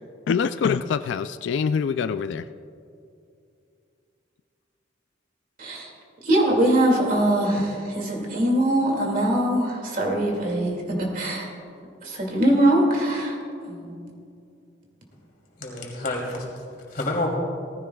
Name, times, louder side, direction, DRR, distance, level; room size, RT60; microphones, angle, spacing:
voice 1, 0.3-2.4, left 6 dB, 70° left, 12 dB, 0.3 m, -24 dB
voice 2, 6.2-11.5 12.0-13.4 13.7-14.0, right 1 dB, 45° right, 0 dB, 2.3 m, -22 dB
voice 3, 15.6-17.3, left 2 dB, 50° left, -2 dB, 2.9 m, -29 dB
18.5 x 15.0 x 2.3 m, 2.5 s
head